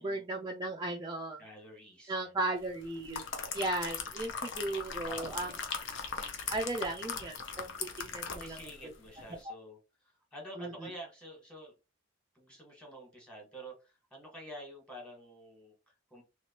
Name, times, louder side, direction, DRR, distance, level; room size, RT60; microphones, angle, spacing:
voice 1, 0.0-1.4 2.1-3.2 3.5-5.5 6.5-8.6 10.6-10.7, right 2 dB, 20° right, 2 dB, 0.3 m, -36 dB
voice 2, 1.4-2.3 5.0-5.6 8.4-11.8 12.3-16.2, right 1 dB, 5° left, -2 dB, 1.4 m, -49 dB
sound 1, 2.8-8.8 9.2-9.3, left 5 dB, 60° left, 0.7 m, -39 dB
3.1 x 3.0 x 2.8 m, 0.28 s
head